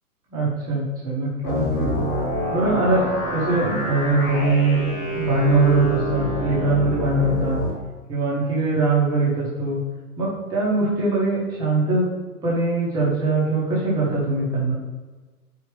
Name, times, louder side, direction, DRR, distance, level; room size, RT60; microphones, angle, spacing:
voice 1, 0.3-1.9 2.5-3.0 3.3-7.6 8.1-9.8 10.2-12.1 12.4-14.7, right 3 dB, 10° right, -6 dB, 0.6 m, -22 dB
sound 1, 1.4-7.7, equal, 30° left, 1.4 m, -27 dB
4.8 x 2.8 x 3.0 m, 1.3 s
figure-of-eight pair, 125°, 45 cm